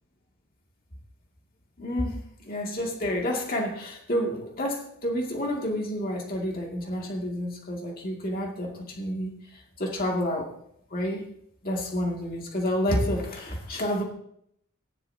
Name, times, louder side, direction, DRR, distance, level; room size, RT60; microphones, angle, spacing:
voice 1, 1.8-2.2 2.4-10.5 10.9-11.2 11.6-14.0, equal, 45° left, -1 dB, 2.4 m, -29 dB
17.0 x 11.5 x 2.8 m, 0.70 s
head